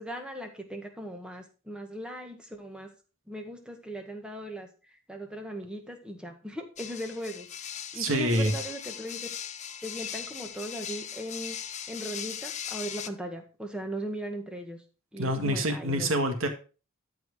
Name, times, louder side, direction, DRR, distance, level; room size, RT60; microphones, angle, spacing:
voice 1, 0.0-2.9 3.3-9.3 9.8-11.6 11.9-14.8 15.1-16.1, right 1 dB, 5° right, 3 dB, 1.6 m, -39 dB
sound 1, 6.8-13.1, left 9 dB, 35° left, 0.7 m, -39 dB
voice 2, 7.9-8.5 15.2-16.5, right 1 dB, 75° right, 5 dB, 1.7 m, -26 dB
13.0 x 4.8 x 5.0 m, 0.35 s
head